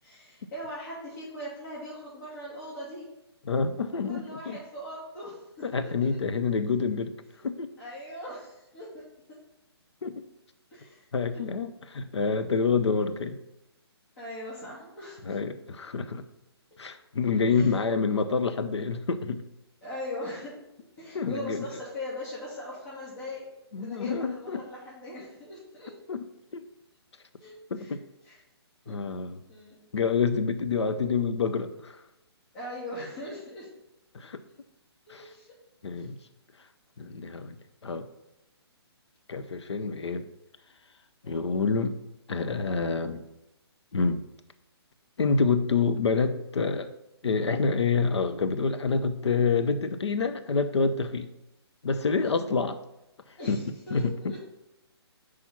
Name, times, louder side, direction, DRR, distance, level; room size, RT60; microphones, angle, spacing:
voice 1, 0.0-3.1 4.1-6.2 7.8-9.0 10.7-11.0 11.3-11.4 14.2-15.3 17.5-17.8 19.8-20.6 21.0-23.5 23.8-25.9 27.4-28.0 28.2-28.4 28.8-29.0 29.5-29.7 32.5-33.7 35.1-35.5 35.9-36.1 52.2-52.5 53.4-54.4, left 1 dB, 45° left, -9 dB, 2.8 m, -40 dB
voice 2, 3.5-4.6 5.6-7.1 7.4-7.7 10.0-10.2 11.1-13.4 15.2-16.3 16.8-19.4 21.1-21.7 23.7-24.6 26.1-26.2 26.5-26.6 27.7-28.0 28.9-29.4 29.9-32.0 34.1-34.4 35.1-35.3 35.8-36.2 37.0-37.6 37.8-38.1 39.3-40.3 41.2-42.0 42.3-43.2 43.9-44.3 45.2-46.9 47.2-51.3 51.8-52.8 53.5-53.6 53.9-54.3, left 4 dB, 85° left, 11 dB, 0.6 m, -27 dB
6.1 x 4.9 x 5.6 m, 0.90 s
hypercardioid pair, 150°, 14 cm